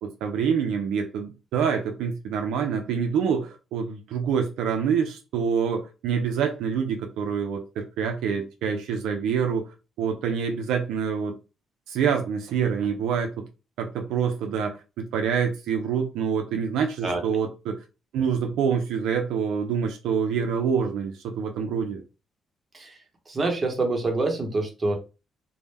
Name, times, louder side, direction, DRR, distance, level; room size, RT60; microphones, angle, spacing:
voice 1, 0.0-9.7 10.0-11.4 11.9-13.3 13.8-17.8 18.1-22.0, right 7 dB, 85° right, 0.3 m, -26 dB
voice 2, 23.3-24.9, right 3 dB, 30° right, 0.8 m, -26 dB
2.0 x 2.0 x 3.2 m
cardioid pair, 90°, 0 cm